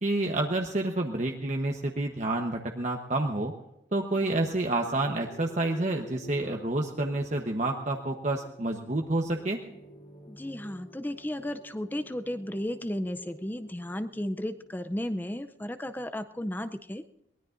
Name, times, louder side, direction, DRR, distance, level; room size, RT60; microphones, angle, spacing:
voice 1, 0.0-3.5 3.9-9.6, right 2 dB, 40° right, 2 dB, 1.0 m, -29 dB
sound 1, 4.1-16.0, left 1 dB, 45° left, 3.1 m, -51 dB
voice 2, 10.3-17.0, left 1 dB, 10° left, 9 dB, 0.5 m, -34 dB
23.0 x 19.0 x 2.6 m, 0.87 s
head